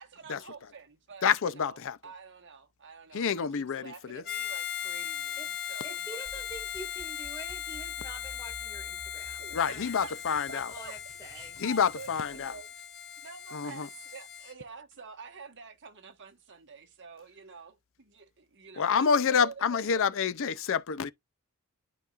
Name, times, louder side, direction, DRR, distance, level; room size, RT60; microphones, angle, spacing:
voice 1, 0.0-6.4 9.4-12.9 13.2-20.1, right 5 dB, 55° right, 1.4 m, -48 dB
voice 2, 1.2-2.0 3.1-4.2 9.5-10.7 11.6-12.5 13.5-13.9 18.8-21.1, left 6 dB, 60° left, 0.5 m, -28 dB
Harmonica, 4.2-14.5, left 10 dB, 45° left, 1.0 m, -39 dB
voice 3, 5.8-9.4 9.7-10.1 10.5-11.6, equal, 15° left, 2.0 m, -46 dB
sound 1, 6.2-12.6, equal, 20° right, 2.9 m, -52 dB
11.0 x 4.1 x 2.5 m
head